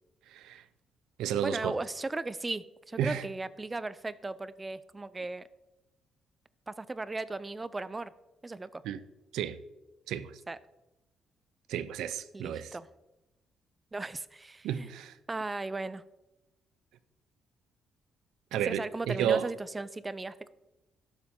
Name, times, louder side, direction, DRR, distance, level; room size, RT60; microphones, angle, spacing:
voice 1, 0.3-0.6 1.2-1.7 3.0-3.2 8.8-9.0 9.3-9.6 10.1-10.4 11.7-12.8 14.6-15.1 18.5-19.5, right 9 dB, 85° right, 0.5 m, -32 dB
voice 2, 1.4-5.5 6.7-8.1 8.4-8.8 10.5-10.6 12.3-12.9 13.9-14.9 15.3-16.0 18.5-20.5, right 3 dB, 20° right, 0.5 m, -37 dB
12.5 x 7.3 x 3.7 m
cardioid pair, 90°, 0 cm